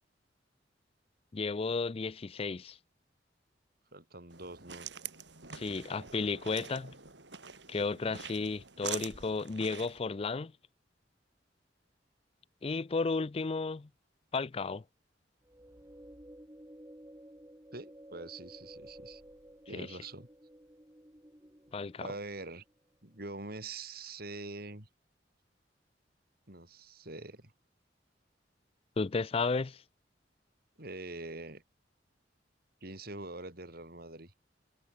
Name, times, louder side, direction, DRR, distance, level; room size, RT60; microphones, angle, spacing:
voice 1, 1.3-2.8 5.5-6.9 7.7-10.5 12.6-13.9 14.3-14.8 19.7-19.9 21.7-22.1 29.0-29.8, left 4 dB, 30° left, 0.4 m, -33 dB
voice 2, 3.9-4.9 17.7-19.2 19.7-20.3 22.0-22.6 23.0-24.9 26.5-27.5 30.8-31.6 32.8-34.3, right 2 dB, 55° right, 4.7 m, -44 dB
sound 1, 4.3-10.0, right 8 dB, 75° right, 5.7 m, -45 dB
sound 2, 15.4-22.8, right 1 dB, 15° right, 3.2 m, -54 dB
head